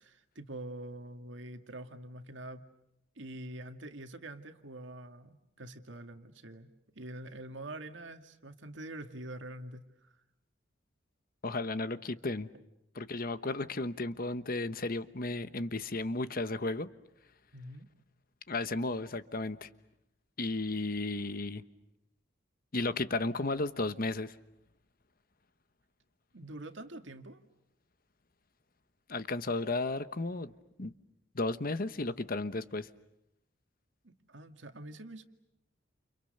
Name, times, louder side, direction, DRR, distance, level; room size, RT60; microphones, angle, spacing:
voice 1, 0.0-2.6 3.2-10.1 17.5-17.9 26.3-27.4 34.0-35.2, right 1 dB, 70° right, 2.1 m, -45 dB
voice 2, 11.4-12.5 12.9-16.9 18.5-19.7 20.4-21.6 22.7-24.3 29.1-30.5 30.8-30.9 31.3-32.9, left 2 dB, 50° left, 1.1 m, -34 dB
30.0 x 29.5 x 6.7 m
head